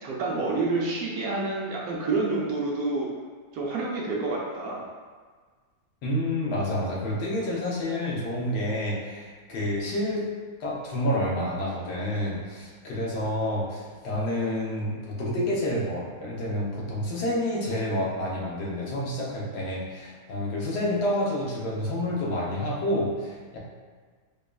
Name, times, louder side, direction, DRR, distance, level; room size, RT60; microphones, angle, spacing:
voice 1, 0.0-3.1 3.5-4.9, right 3 dB, 70° right, -3 dB, 1.0 m, -28 dB
voice 2, 6.0-10.3 10.6-23.6, left 1 dB, 80° left, -4 dB, 1.3 m, -29 dB
5.1 x 2.4 x 2.2 m, 1.5 s
omnidirectional pair, 1.8 m